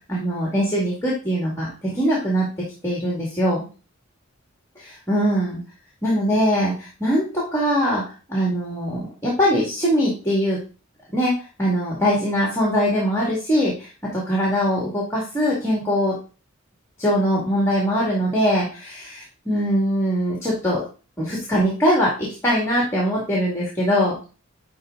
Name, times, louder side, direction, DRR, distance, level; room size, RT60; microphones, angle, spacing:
voice 1, 0.1-2.5 2.8-3.6 4.8-5.6 6.0-8.0 8.3-10.6 11.1-11.3 11.6-16.1 17.0-20.8 21.2-24.2, equal, 15° left, -4 dB, 2.2 m, -22 dB
10.5 x 3.8 x 3.9 m, 0.34 s
head